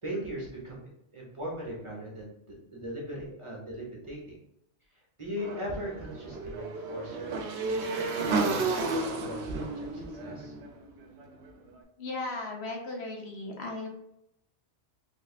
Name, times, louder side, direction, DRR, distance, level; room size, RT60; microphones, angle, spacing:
voice 1, 0.0-0.8 1.1-2.3 2.7-4.4 5.2-8.0 8.5-10.5, equal, 30° right, -4 dB, 0.9 m, -39 dB
Motorcycle / Engine, 5.4-11.5, right 3 dB, 75° right, 0.8 m, -32 dB
voice 2, 12.0-13.9, left 2 dB, 75° left, 1 dB, 1.0 m, -36 dB
3.5 x 3.2 x 2.4 m, 0.79 s
omnidirectional pair, 1.1 m